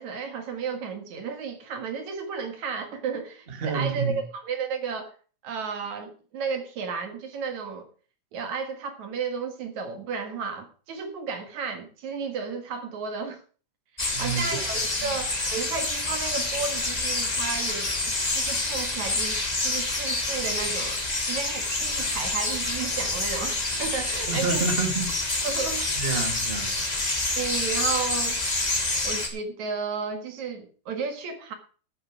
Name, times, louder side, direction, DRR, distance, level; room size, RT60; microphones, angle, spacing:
voice 1, 0.0-5.1 5.4-7.9 8.3-13.4 14.2-24.7 25.4-26.2 27.4-28.4 29.0-31.5, right 5 dB, 65° right, 6 dB, 3.0 m, -33 dB
voice 2, 3.5-4.2 14.1-14.5 15.0-15.1 24.3-25.1 25.9-26.8, right 5 dB, 25° right, 4 dB, 1.3 m, -28 dB
sound 1, 14.0-29.3, left 2 dB, 20° left, 1.1 m, -27 dB
12.5 x 9.3 x 5.0 m, 0.40 s
omnidirectional pair, 3.7 m